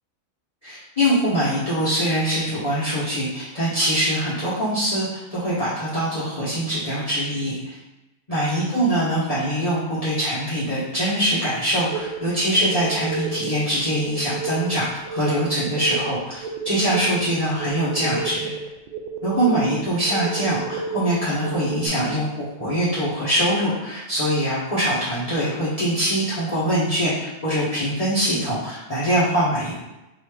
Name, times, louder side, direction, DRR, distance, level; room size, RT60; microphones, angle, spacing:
voice 1, 0.6-7.8 8.3-18.5 19.2-29.7, equal, 30° left, -12 dB, 1.2 m, -23 dB
sound 1, 11.9-21.9, right 4 dB, 70° right, 0.4 m, -31 dB
5.4 x 2.6 x 3.3 m, 0.97 s
omnidirectional pair, 1.4 m